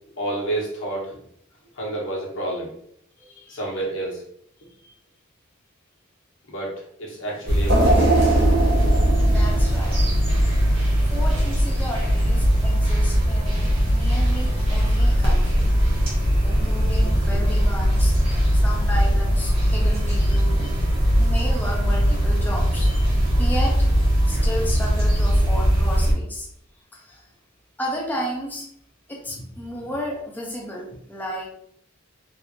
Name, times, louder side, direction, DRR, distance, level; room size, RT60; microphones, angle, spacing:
voice 1, 0.2-1.1 1.8-2.7 3.5-4.2 6.5-8.1 16.2-16.6 17.0-17.2 21.0-21.2, right 1 dB, 70° left, -3 dB, 1.2 m, -30 dB
voice 2, 3.2-3.8 4.8-4.9 9.3-10.1 10.7-15.7 16.4-18.2 18.6-20.8 21.2-23.9 24.2-26.5 26.9-27.3 27.8-28.7 29.1-31.5, equal, 10° left, -3 dB, 0.5 m, -33 dB
sound 1, 7.5-26.1, equal, 30° right, 1.2 m, -20 dB
sound 2, 7.7-10.8 11.3-11.4 12.4-12.5, right 2 dB, 60° right, 0.9 m, -24 dB
3.3 x 2.5 x 3.0 m, 0.68 s
head